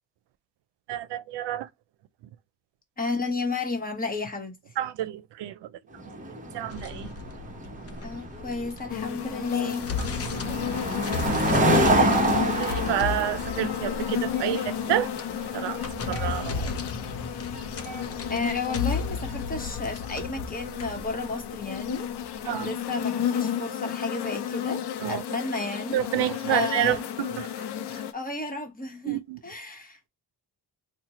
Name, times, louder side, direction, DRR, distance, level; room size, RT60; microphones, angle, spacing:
voice 1, 0.9-1.7 4.8-5.7 6.5-7.1 10.0-10.1 10.5-10.6 11.7-15.1 15.5-15.8 16.1-16.7 22.4-22.7 25.0-25.2 25.9-27.5 29.1-29.4, right 12 dB, 85° right, 0.6 m, -29 dB
voice 2, 3.0-4.5 8.0-9.9 16.0-16.1 18.3-26.0 26.5-27.1 28.1-30.1, left 3 dB, 20° left, 1.0 m, -32 dB
sound 1, 6.0-19.5, right 1 dB, 20° right, 0.9 m, -29 dB
sound 2, 6.7-9.1 9.4-22.4, left 5 dB, 35° left, 0.6 m, -35 dB
sound 3, 8.9-28.1, left 9 dB, 75° left, 0.7 m, -33 dB
4.2 x 2.2 x 2.9 m
wide cardioid pair, 150°, 41 cm